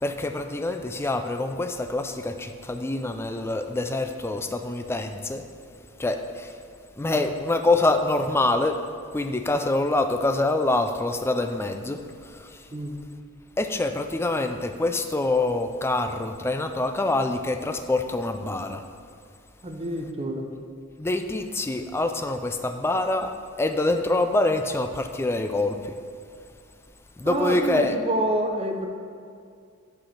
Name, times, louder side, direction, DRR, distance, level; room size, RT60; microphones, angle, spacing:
voice 1, 0.0-5.4 6.0-6.5 7.0-8.8 9.1-12.6 13.6-18.8 21.0-23.3 23.6-25.9 27.2-27.9, left 2 dB, 10° left, 7 dB, 0.3 m, -25 dB
voice 2, 19.6-20.5 27.2-28.9, right 1 dB, 30° right, 3 dB, 0.6 m, -28 dB
6.3 x 4.9 x 5.7 m, 2.2 s
head